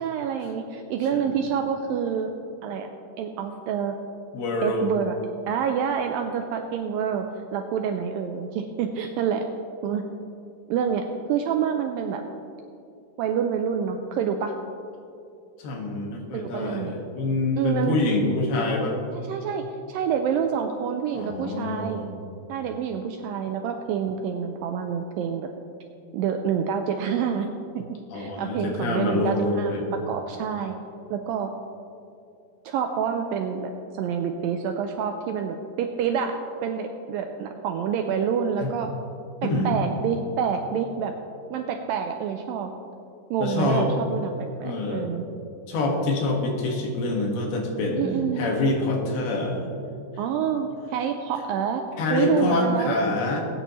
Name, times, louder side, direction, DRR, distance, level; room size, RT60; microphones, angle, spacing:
voice 1, 0.0-2.3 2.6-2.9 3.2-4.0 4.6-5.2 5.5-7.3 7.5-9.5 9.8-10.0 10.7-11.0 11.3-12.2 13.2-14.5 16.3-16.9 17.6-18.0 19.1-22.0 22.5-25.5 26.1-27.5 27.8-27.9 28.1-30.7 31.1-31.5 32.7-38.9 39.4-41.1 41.5-42.7 43.3-45.2 48.0-48.5 50.2-51.8 52.1-53.0, right 7 dB, 80° right, 5 dB, 2.1 m, -27 dB
voice 2, 4.3-4.9 15.6-19.0 21.1-22.1 28.1-29.9 38.6-38.7 39.4-39.7 43.4-43.9 44.6-45.1 45.7-48.1 48.4-49.7 52.0-53.4, left 2 dB, 75° left, 0 dB, 3.6 m, -26 dB
20.5 x 9.3 x 3.1 m, 2.6 s
omnidirectional pair, 4.6 m